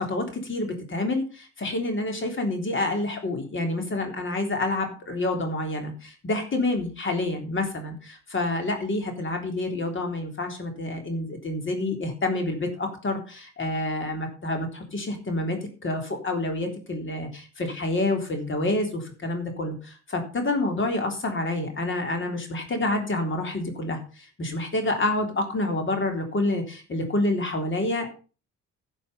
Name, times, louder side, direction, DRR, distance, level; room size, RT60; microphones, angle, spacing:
voice 1, 0.0-28.1, left 2 dB, 40° left, 4 dB, 3.5 m, -28 dB
12.0 x 6.7 x 5.6 m, 0.36 s
cardioid pair, 90°, 30 cm